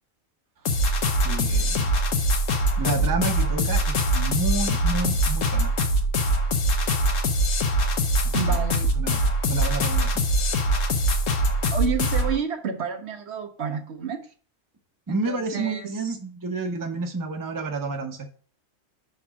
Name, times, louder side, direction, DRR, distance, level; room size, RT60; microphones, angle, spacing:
sound 1, 0.7-12.4, equal, 75° left, 1.3 m, -23 dB
voice 1, 1.2-1.9 2.8-5.7 8.2-8.6 9.0-9.2 9.5-10.1 15.1-18.3, right 3 dB, 20° right, 4 dB, 0.7 m, -30 dB
voice 2, 8.3-8.9 11.7-14.2 15.1-16.2, right 6 dB, 60° right, 4 dB, 1.0 m, -30 dB
5.9 x 4.3 x 6.0 m, 0.41 s
omnidirectional pair, 1.3 m